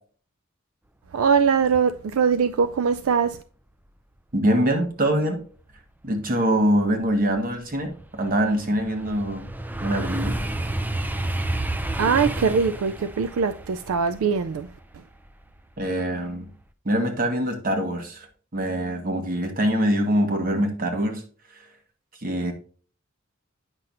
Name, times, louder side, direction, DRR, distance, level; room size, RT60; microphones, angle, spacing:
voice 1, 1.1-3.4 12.0-14.7, right 6 dB, 85° right, 0.4 m, -22 dB
voice 2, 4.3-5.4 6.0-9.5 9.8-10.4 15.8-16.5 16.8-18.3 18.5-21.2 22.2-22.5, equal, 45° right, 1.3 m, -24 dB
sound 1, 6.2-6.3 6.8-15.8 16.2-16.6, right 1 dB, 10° right, 0.4 m, -31 dB
8.8 x 5.8 x 2.5 m
head